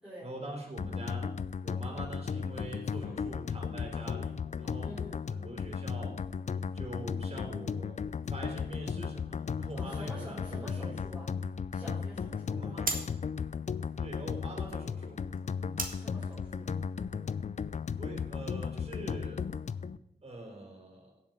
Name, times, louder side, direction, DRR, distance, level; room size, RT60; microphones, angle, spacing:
voice 1, 0.2-1.3 1.6-4.9 5.3-6.2 6.7-8.0 8.3-11.0 12.5-12.9 14.0-15.3 18.0-19.5 20.2-21.1, right 1 dB, 35° right, 0 dB, 4.1 m, -44 dB
sound 1, 0.8-20.0, left 6 dB, 45° left, 0.4 m, -36 dB
voice 2, 3.0-3.3 4.8-5.2 9.7-11.3 11.7-13.1 15.8-16.7, equal, 5° right, -9 dB, 4.4 m, -47 dB
sound 2, 9.7-18.3, right 3 dB, 55° right, 1.7 m, -44 dB
16.5 x 7.5 x 4.6 m, 0.86 s
wide cardioid pair, 80°, 17 cm